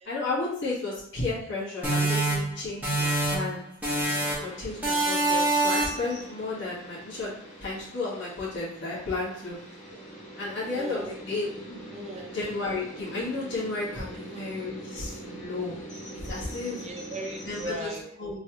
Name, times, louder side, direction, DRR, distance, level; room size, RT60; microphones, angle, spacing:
voice 1, 0.0-3.6 4.4-7.3 7.6-9.6 10.3-11.8 12.3-15.8 16.2-16.8 17.4-18.4, left 3 dB, 65° left, -8 dB, 1.5 m, -33 dB
sound 1, 1.8-3.5 3.8-4.5 4.8-6.1, right 2 dB, 10° right, 1.0 m, -25 dB
sound 2, 3.9-17.7, right 1 dB, 35° left, 0.9 m, -43 dB
voice 2, 10.8-11.2 11.9-12.4 14.3-14.4 16.7-18.0, equal, 35° right, 2 dB, 0.6 m, -38 dB
3.1 x 3.1 x 2.9 m, 0.68 s
head